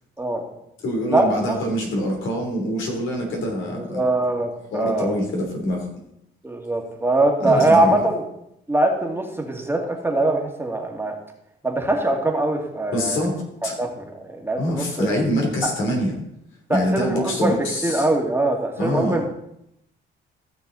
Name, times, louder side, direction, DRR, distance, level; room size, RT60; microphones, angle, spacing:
voice 1, 0.8-4.0 4.7-5.9 7.4-7.9 12.9-13.7 14.6-16.1 16.7-18.1 18.8-19.2, equal, 80° left, 0 dB, 3.4 m, -24 dB
voice 2, 3.9-5.2 6.4-8.2 8.7-11.2 11.6-13.3 13.8-15.1 15.6-15.7 16.7-19.2, right 2 dB, 10° right, 1 dB, 2.1 m, -22 dB
14.5 x 6.7 x 4.1 m, 0.79 s
cardioid pair, 90°, 20 cm